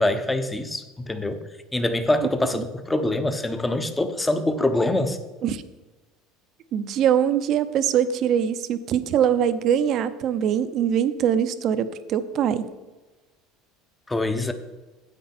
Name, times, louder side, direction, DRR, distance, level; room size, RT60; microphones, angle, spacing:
voice 1, 0.0-1.4 1.7-5.2 14.1-14.5, left 1 dB, 10° left, 9 dB, 0.8 m, -24 dB
voice 2, 6.7-12.7, right 9 dB, 50° right, 12 dB, 0.7 m, -23 dB
9.7 x 8.4 x 4.3 m, 1.2 s
supercardioid pair, 130°, 0 cm